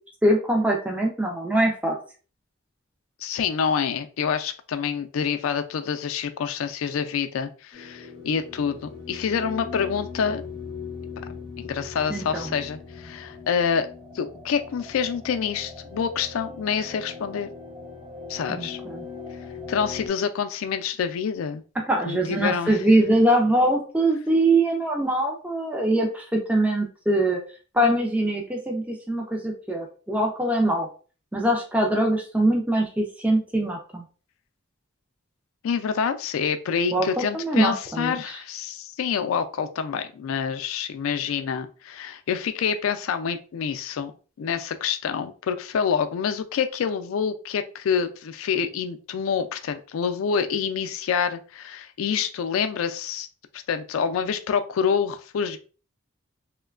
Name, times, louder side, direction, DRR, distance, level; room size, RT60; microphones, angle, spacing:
voice 1, 0.2-2.0 12.1-12.5 18.5-19.0 21.9-27.4 27.7-30.9 31.3-34.0 36.9-38.1, right 1 dB, 5° right, 0 dB, 0.4 m, -23 dB
voice 2, 3.2-8.8 9.1-10.4 11.6-13.9 14.1-17.5 18.3-18.8 19.7-21.6 22.0-22.8 35.6-44.1 44.4-53.3 53.5-55.6, left 6 dB, 80° left, 8 dB, 0.3 m, -27 dB
sound 1, 7.7-20.1, left 5 dB, 25° right, 0.8 m, -39 dB
3.0 x 2.1 x 2.3 m, 0.37 s
head